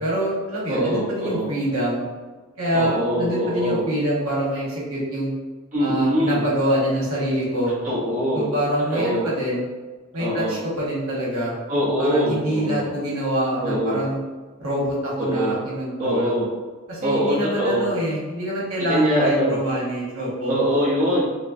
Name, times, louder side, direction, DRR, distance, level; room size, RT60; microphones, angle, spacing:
voice 1, 0.0-2.1 2.6-5.4 5.8-7.7 8.3-9.6 10.1-11.5 12.0-14.2 14.6-16.3 16.9-20.5, equal, 75° right, -5 dB, 1.3 m, -25 dB
voice 2, 0.7-1.5 2.7-3.8 5.7-6.4 7.8-8.5 8.9-9.3 10.2-10.6 11.7-12.9 13.6-14.0 15.2-15.6 16.0-16.5 17.0-17.9 18.8-19.6 20.5-21.2, equal, 40° right, -7 dB, 0.9 m, -23 dB
5.3 x 2.1 x 2.6 m, 1.4 s
head